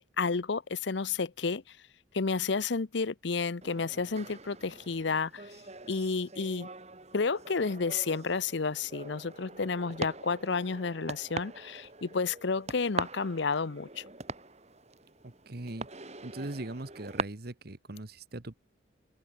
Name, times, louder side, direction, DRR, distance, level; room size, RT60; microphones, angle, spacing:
voice 1, 0.0-1.8 2.1-5.5 5.9-6.7 7.1-14.0, left 4 dB, 65° left, 0.7 m, -31 dB
sound 1, 3.6-17.2, right 3 dB, 35° right, 3.2 m, -42 dB
voice 2, 15.2-15.9 16.2-18.5, right 2 dB, 50° right, 1.3 m, -40 dB
open air
head